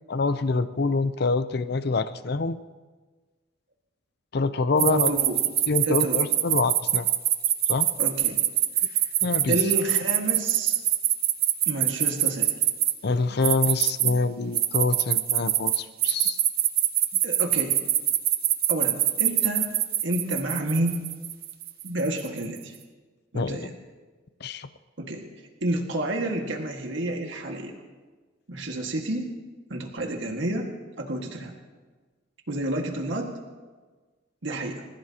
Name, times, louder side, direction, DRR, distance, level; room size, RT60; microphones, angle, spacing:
voice 1, 0.1-2.6 4.3-5.1 5.7-7.1 7.7-7.9 9.2-9.6 13.0-16.4 23.3-23.7 24.4-24.7, left 3 dB, 55° left, 12 dB, 0.6 m, -26 dB
sound 1, 4.8-12.9 13.4-14.1 14.5-22.4, right 12 dB, 50° right, 0.8 m, -23 dB
voice 2, 4.8-5.4 5.9-6.2 8.0-8.4 8.9-9.0 9.5-10.8 11.7-12.5 17.2-17.8 18.7-19.7 20.0-21.0 21.8-22.8 23.3-23.7 25.0-25.2 25.6-27.7 28.5-29.3 29.7-30.7 31.0-31.5 32.5-33.3 34.4-34.9, right 1 dB, 75° right, 1 dB, 1.8 m, -29 dB
29.5 x 15.5 x 2.9 m, 1.3 s
head